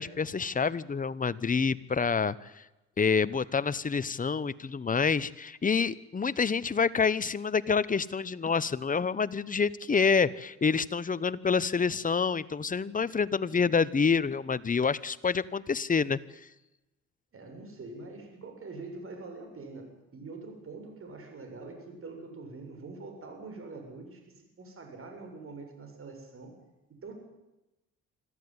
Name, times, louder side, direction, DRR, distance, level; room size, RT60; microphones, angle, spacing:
voice 1, 0.0-2.6 3.0-16.2, left 5 dB, 25° left, 16 dB, 1.0 m, -27 dB
voice 2, 17.3-24.2 24.6-26.5 27.0-27.1, right 3 dB, 45° right, 4 dB, 7.7 m, -44 dB
25.0 x 14.5 x 9.7 m, 0.99 s
cardioid pair, 90°, 30 cm